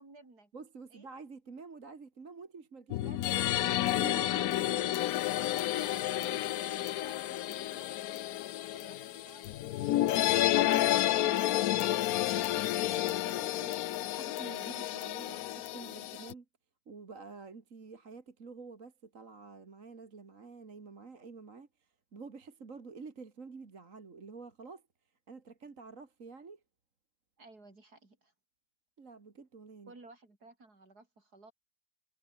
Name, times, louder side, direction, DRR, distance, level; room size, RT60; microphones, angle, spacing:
voice 1, 0.0-0.5 0.9-1.1 5.8-8.0 8.7-10.2 27.4-28.3 29.9-31.5, right 2 dB, 70° right, 5.6 m, -56 dB
voice 2, 0.5-5.1 10.0-16.5 16.9-24.8 25.3-26.6 29.0-29.9, right 4 dB, 50° right, 2.5 m, -49 dB
sound 1, 2.9-16.3, left 14 dB, 70° left, 1.0 m, -31 dB
omnidirectional pair, 1.7 m